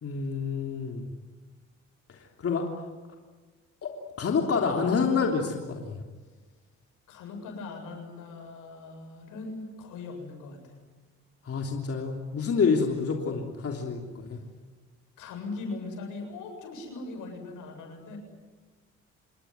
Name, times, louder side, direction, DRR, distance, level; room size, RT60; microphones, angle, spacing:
voice 1, 0.0-1.1 2.1-2.7 3.8-6.0 11.4-14.4, left 5 dB, 50° left, 2 dB, 3.4 m, -28 dB
voice 2, 7.1-10.7 15.2-18.2, left 3 dB, 85° left, 4 dB, 7.9 m, -40 dB
27.5 x 21.0 x 9.5 m, 1.3 s
cardioid pair, 90°, 30 cm